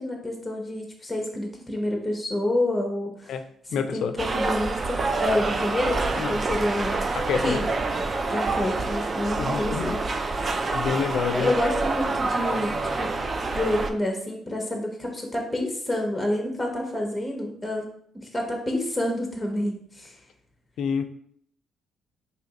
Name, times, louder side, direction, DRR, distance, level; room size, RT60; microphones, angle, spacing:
voice 1, 0.0-3.3 3.9-7.1 7.4-7.6 8.3-10.1 10.4-10.6 11.3-13.1 13.5-17.9 18.1-20.2, left 1 dB, 10° left, 1 dB, 0.8 m, -28 dB
voice 2, 3.7-4.2 6.2-6.4 7.1-7.6 9.4-10.0 10.7-11.5 20.8-21.0, left 6 dB, 70° left, 9 dB, 0.3 m, -27 dB
sound 1, 4.2-13.9, right 3 dB, 35° right, 0.3 m, -27 dB
2.7 x 2.5 x 4.0 m, 0.62 s
cardioid pair, 90°, 0 cm